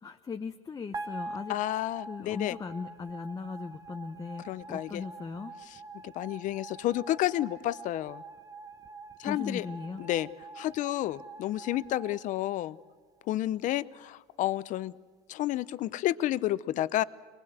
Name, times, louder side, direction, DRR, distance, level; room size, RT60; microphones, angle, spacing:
voice 1, 0.0-5.5 9.2-10.0, left 5 dB, 20° left, 5 dB, 0.9 m, -39 dB
sound 1, 0.9-13.2, right 3 dB, 20° right, 1.2 m, -45 dB
voice 2, 1.5-2.5 4.5-5.0 6.0-8.2 9.2-9.7 10.0-10.3 10.6-12.8 13.3-14.9 15.3-17.0, left 14 dB, 55° left, 18 dB, 0.7 m, -30 dB
24.0 x 19.5 x 8.0 m, 1.5 s
supercardioid pair, 110°, 16 cm